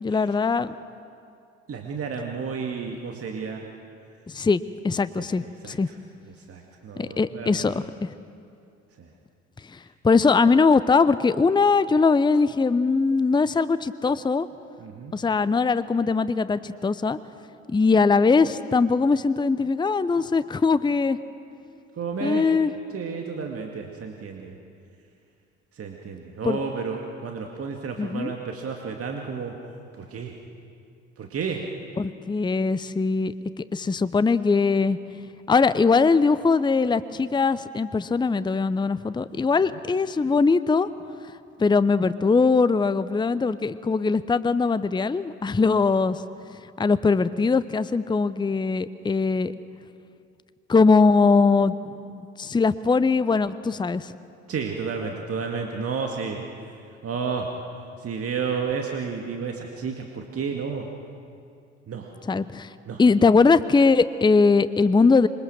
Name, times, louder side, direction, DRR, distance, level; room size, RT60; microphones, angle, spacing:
voice 1, 0.0-0.7 4.3-5.9 7.0-8.1 9.7-9.8 10.0-14.5 15.1-17.2 17.7-21.2 22.2-22.7 26.4-26.6 28.0-28.3 32.0-33.3 33.7-35.0 35.5-40.9 41.6-46.2 46.8-49.5 50.7-51.7 52.4-54.1 62.3-62.7 63.0-65.3, left 4 dB, 15° left, 15 dB, 0.7 m, -21 dB
voice 2, 1.7-3.7 5.2-6.0 6.4-7.8 9.0-9.1 14.8-15.2 22.0-22.5 22.9-24.5 25.7-29.6 29.9-30.4 31.2-31.7 54.5-56.8 57.0-57.5 58.0-60.9 61.9-62.1 62.9-63.0, right 5 dB, 40° right, 2 dB, 2.2 m, -32 dB
26.0 x 22.0 x 6.4 m, 2.5 s
figure-of-eight pair, 50°, 35 cm